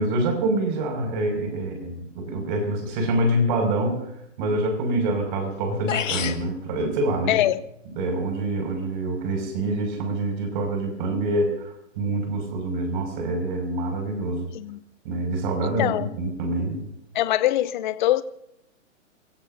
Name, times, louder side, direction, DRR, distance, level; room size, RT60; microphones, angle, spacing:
voice 1, 0.0-4.1 4.4-7.4 8.0-14.5 15.0-16.9, right 1 dB, 40° right, 6.1 m, -26 dB
sound 1, 5.5-5.6 5.9-6.5, left 8 dB, 85° left, 2.0 m, -27 dB
voice 2, 7.3-7.6 14.5-14.8 15.6-16.1 17.1-18.2, left 14 dB, 40° left, 0.8 m, -23 dB
29.5 x 15.5 x 2.7 m
hypercardioid pair, 150°, 38 cm